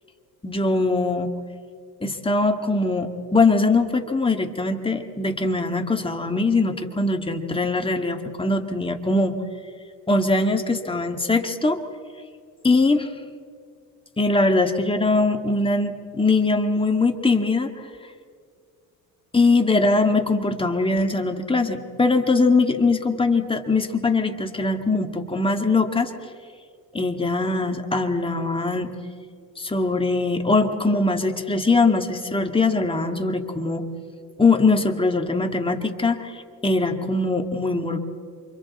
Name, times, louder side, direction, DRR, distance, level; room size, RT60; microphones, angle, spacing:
voice 1, 0.4-1.3 2.0-9.4 10.1-11.8 12.6-13.1 14.2-17.7 19.3-26.1 26.9-28.9 29.6-33.9 34.4-38.0, left 3 dB, 15° left, 5 dB, 1.9 m, -21 dB
28.0 x 25.0 x 4.3 m, 2.1 s
supercardioid pair, 90°, 36 cm